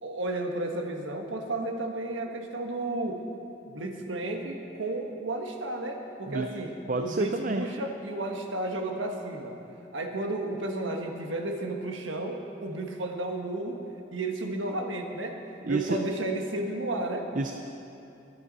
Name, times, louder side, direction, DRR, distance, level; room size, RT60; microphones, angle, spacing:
voice 1, 0.0-3.2 3.7-9.6 9.9-13.8 14.1-15.4 15.6-17.3, right 2 dB, 80° right, 3 dB, 1.5 m, -33 dB
voice 2, 6.9-7.7 15.6-16.0 17.4-17.5, right 3 dB, 45° right, 5 dB, 0.5 m, -29 dB
24.0 x 9.4 x 4.1 m, 2.7 s
head